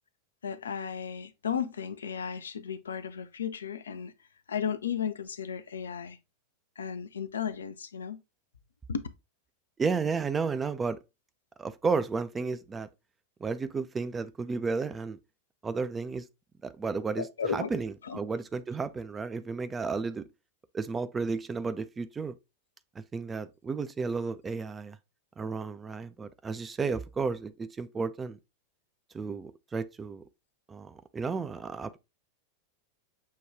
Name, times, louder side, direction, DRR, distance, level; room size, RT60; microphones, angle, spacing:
voice 1, 0.4-4.1 4.5-6.2 6.8-8.2 8.9-9.1 17.2-17.7 18.0-18.2, left 7 dB, 70° left, 0.4 m, -34 dB
voice 2, 9.8-11.0 11.6-12.9 13.4-15.2 15.6-16.2 16.6-17.3 17.5-20.2 20.7-22.4 23.0-25.0 25.4-28.4 29.1-30.2 30.7-32.0, right 4 dB, 15° right, 0.4 m, -32 dB
6.4 x 2.3 x 3.4 m
figure-of-eight pair, 90°, 0 cm